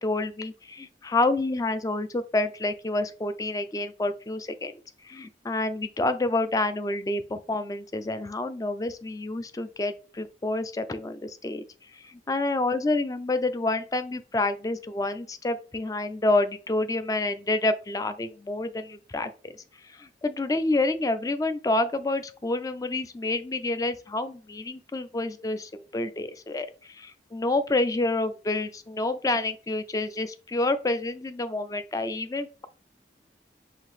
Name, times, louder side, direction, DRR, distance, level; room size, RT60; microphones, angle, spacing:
voice 1, 0.0-4.7 5.0-11.6 11.9-19.5 19.8-32.7, left 2 dB, 20° left, 0.3 m, -28 dB
5.6 x 2.7 x 3.1 m
head